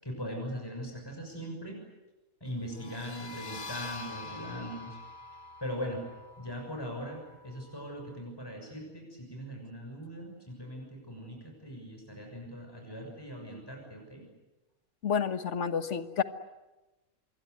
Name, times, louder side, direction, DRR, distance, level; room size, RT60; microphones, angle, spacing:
voice 1, 0.0-1.8 2.4-5.0 5.6-6.0 6.4-14.2, equal, 15° left, 1 dB, 6.6 m, -40 dB
sound 1, 2.7-8.1, left 3 dB, 35° left, 1.5 m, -45 dB
voice 2, 15.0-16.2, left 7 dB, 55° left, 10 dB, 1.6 m, -29 dB
26.5 x 22.5 x 9.5 m, 1.1 s
omnidirectional pair, 1.5 m